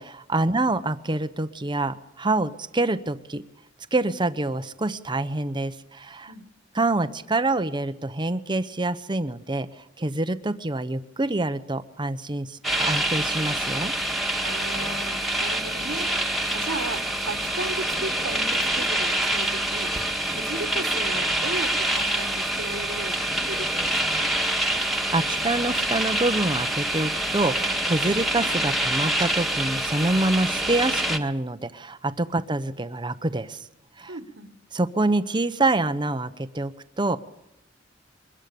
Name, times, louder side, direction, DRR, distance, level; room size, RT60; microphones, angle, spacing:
voice 1, 0.0-3.4 3.9-6.3 6.7-9.7 10.0-13.9 24.7-33.6 34.0-34.1 34.7-37.2, right 2 dB, 25° right, 12 dB, 0.9 m, -26 dB
sound 1, 12.6-31.2, right 1 dB, ahead, 1.8 m, -26 dB
voice 2, 14.4-16.1 16.5-19.9 20.3-24.3 34.1-34.5, right 2 dB, 70° right, 8 dB, 1.6 m, -36 dB
23.0 x 21.0 x 6.9 m, 0.85 s
head